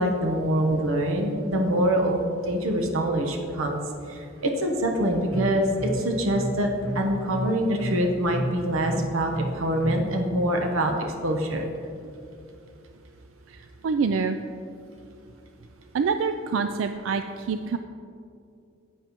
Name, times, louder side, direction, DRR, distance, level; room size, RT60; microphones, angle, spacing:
voice 1, 0.0-3.8 4.1-6.7 6.9-10.9 11.2-11.7, right 1 dB, 85° right, 3 dB, 0.9 m, -25 dB
sound 1, 5.3-10.1, right 1 dB, 10° left, 1.9 m, -32 dB
voice 2, 13.5-14.4 15.9-17.8, right 5 dB, 70° right, 8 dB, 0.3 m, -26 dB
10.5 x 8.6 x 3.0 m, 2.5 s
head